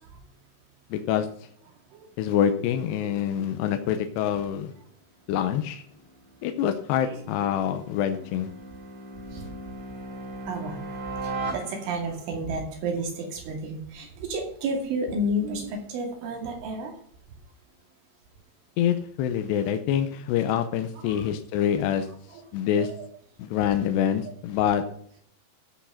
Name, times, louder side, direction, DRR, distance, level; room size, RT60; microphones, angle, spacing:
voice 1, 0.9-1.3 2.2-4.7 5.3-5.8 6.4-8.5 18.8-22.1 22.5-22.9 23.4-24.8, left 9 dB, 75° left, 7 dB, 2.7 m, -26 dB
voice 2, 1.7-2.1 2.9-3.1 4.8-4.9 7.0-7.2 8.2-8.3 9.2-9.5 10.0-10.1 10.5-16.9 20.9-21.3 21.8-21.9 22.3-22.4 22.8-23.1, right 1 dB, 90° right, 2 dB, 4.9 m, -32 dB
sound 1, 5.8-12.3, right 2 dB, 35° right, 2.8 m, -38 dB
14.0 x 6.3 x 5.8 m, 0.62 s
omnidirectional pair, 5.4 m